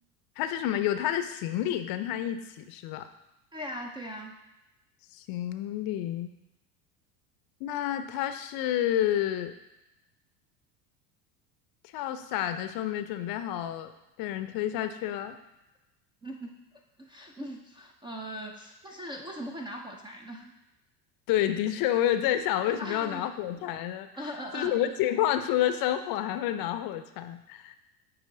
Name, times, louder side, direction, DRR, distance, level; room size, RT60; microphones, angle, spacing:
voice 1, 0.4-3.1 5.1-6.3 7.6-9.5 11.9-13.9 14.2-15.4 21.3-27.8, left 11 dB, 50° left, 10 dB, 0.6 m, -29 dB
voice 2, 3.5-4.4 16.2-16.6 17.0-20.5 22.6-23.3 24.2-24.8, equal, 10° right, 1 dB, 0.3 m, -40 dB
9.0 x 3.0 x 3.7 m, 0.97 s
hypercardioid pair, 85°, 47 cm